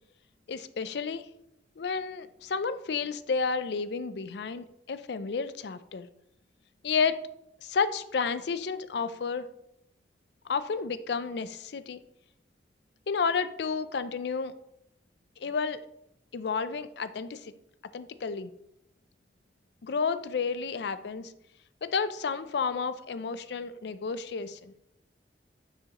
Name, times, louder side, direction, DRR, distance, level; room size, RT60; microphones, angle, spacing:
voice 1, 0.5-1.3 1.8-6.1 6.8-7.2 7.6-9.5 10.5-12.0 13.1-14.5 15.4-15.8 16.3-17.5 17.9-18.5 19.8-21.3 21.8-24.7, left 5 dB, 65° left, 13 dB, 0.4 m, -31 dB
9.2 x 4.8 x 3.0 m, 0.79 s
head